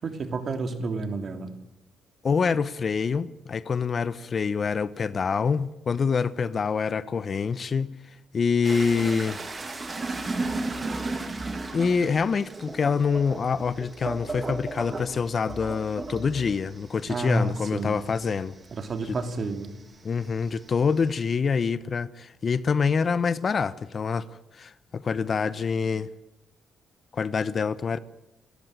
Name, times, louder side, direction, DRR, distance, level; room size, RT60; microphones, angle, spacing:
voice 1, 0.0-1.5 17.1-18.0 18.7-19.7, right 3 dB, 45° right, 3.0 m, -30 dB
voice 2, 2.2-9.4 11.7-18.5 20.0-24.3 24.5-26.1 27.1-28.0, left 5 dB, 45° left, 0.9 m, -26 dB
sound 1, 8.6-19.6 19.9-21.1, right 3 dB, 30° right, 2.8 m, -35 dB
28.5 x 13.5 x 9.1 m
cardioid pair, 90°, 0 cm